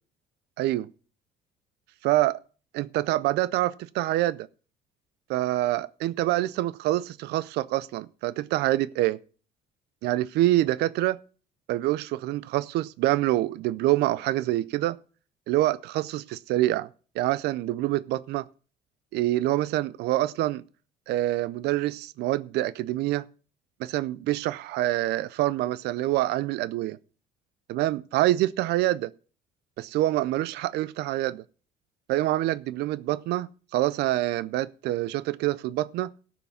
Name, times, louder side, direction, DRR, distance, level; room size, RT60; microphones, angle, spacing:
voice 1, 2.7-4.5 5.3-9.2 10.0-11.2 11.7-15.0 15.5-16.9 17.2-18.5 19.1-20.6 21.1-23.2 23.8-27.0 27.7-29.1 29.8-31.4 32.1-33.5 33.7-36.1, right 15 dB, 80° right, 0.5 m, -26 dB
13.0 x 5.9 x 7.0 m
cardioid pair, 110°, 17 cm